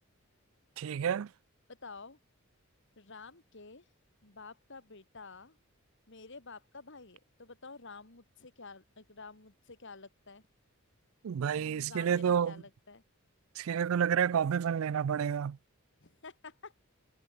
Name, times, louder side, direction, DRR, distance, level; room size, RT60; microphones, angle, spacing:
voice 1, 0.8-1.3 11.2-12.5 13.6-15.6, right 8 dB, 70° right, 0.4 m, -29 dB
voice 2, 1.7-2.2 3.0-3.9 4.2-5.6 6.1-10.4 11.5-13.0 16.0-16.8, left 4 dB, 60° left, 2.3 m, -50 dB
head